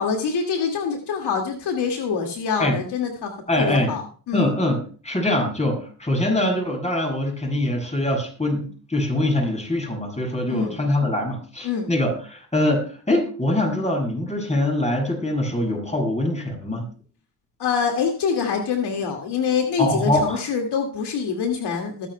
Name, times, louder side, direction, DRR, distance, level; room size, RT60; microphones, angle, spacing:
voice 1, 0.0-3.3 3.6-4.5 10.5-10.8 11.6-11.9 17.6-22.1, left 6 dB, 70° left, 3 dB, 2.2 m, -25 dB
voice 2, 3.5-3.9 4.3-4.8 5.0-16.8 19.8-20.4, left 1 dB, 15° left, 1 dB, 7.0 m, -23 dB
21.0 x 10.0 x 2.3 m, 0.39 s
cardioid pair, 75°, 41 cm